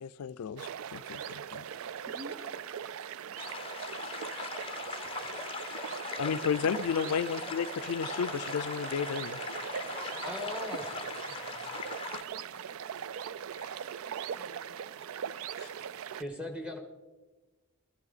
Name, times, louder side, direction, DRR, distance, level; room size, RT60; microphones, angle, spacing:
voice 1, 0.0-1.7 6.2-9.4 13.5-13.7 15.6-15.7, left 6 dB, 90° left, 17 dB, 0.4 m, -33 dB
sound 1, 0.6-16.2, right 8 dB, 75° right, 0.3 m, -40 dB
voice 2, 2.0-2.6 4.9-6.1 6.5-6.9 9.5-11.3 11.9-12.8 14.1-15.3, right 2 dB, 45° right, 4 dB, 0.8 m, -51 dB
sound 2, 3.4-12.2, left 5 dB, 25° left, 0.6 m, -40 dB
voice 3, 10.2-10.9 16.2-16.8, left 1 dB, 5° right, 3 dB, 1.4 m, -38 dB
14.0 x 13.5 x 4.0 m, 1.2 s
head